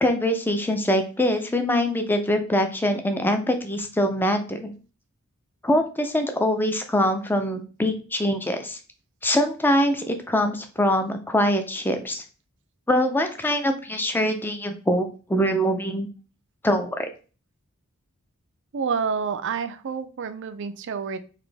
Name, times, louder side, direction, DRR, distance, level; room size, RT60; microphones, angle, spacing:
voice 1, 0.0-4.7 5.6-8.8 9.2-12.2 12.9-16.1 16.6-17.1, left 1 dB, 10° left, 6 dB, 0.4 m, -23 dB
voice 2, 18.7-21.2, right 6 dB, 55° right, 10 dB, 0.4 m, -28 dB
4.1 x 2.6 x 3.3 m, 0.36 s
head